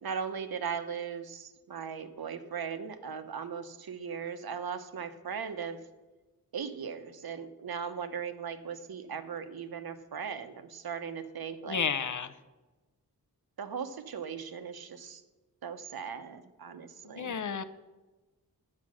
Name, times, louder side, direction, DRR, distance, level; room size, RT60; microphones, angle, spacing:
voice 1, 0.0-5.8 6.5-11.9 13.6-15.2 15.6-17.3, right 6 dB, 70° right, 9 dB, 1.0 m, -38 dB
voice 2, 11.7-12.3 17.1-17.6, left 6 dB, 50° left, 13 dB, 0.7 m, -32 dB
9.7 x 8.5 x 6.3 m, 1.2 s
wide cardioid pair, 140°, 38 cm